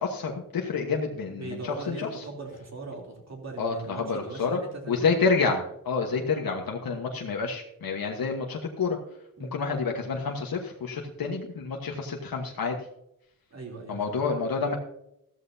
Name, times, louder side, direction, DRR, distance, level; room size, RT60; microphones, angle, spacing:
voice 1, 0.0-2.1 3.6-4.6 4.9-9.0 9.4-12.8 13.9-14.7, left 4 dB, 85° left, 1 dB, 1.4 m, -28 dB
voice 2, 1.3-5.1 6.4-6.6 9.4-9.5 13.5-14.2, right 3 dB, 50° right, 0 dB, 3.3 m, -40 dB
14.5 x 13.5 x 2.8 m, 0.79 s
wide cardioid pair, 155°, 34 cm